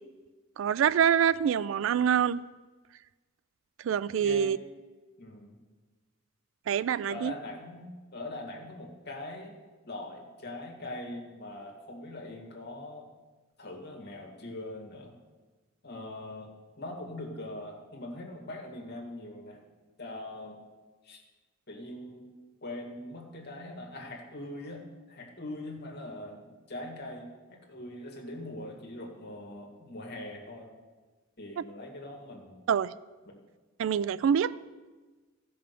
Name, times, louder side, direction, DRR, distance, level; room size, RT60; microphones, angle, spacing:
voice 1, 0.6-2.4 3.8-4.6 6.7-7.3 32.7-32.9 33.8-34.5, right 8 dB, 65° right, 18 dB, 0.3 m, -25 dB
voice 2, 4.2-4.6 5.2-5.5 7.1-9.6 9.8-13.1 13.6-15.1 15.8-16.5 16.8-19.6 20.0-20.6 21.0-21.2 21.7-22.3 22.6-30.7 31.4-32.6 33.3-33.4, left 1 dB, 50° left, 1 dB, 1.9 m, -42 dB
14.0 x 5.5 x 6.7 m, 1.3 s
head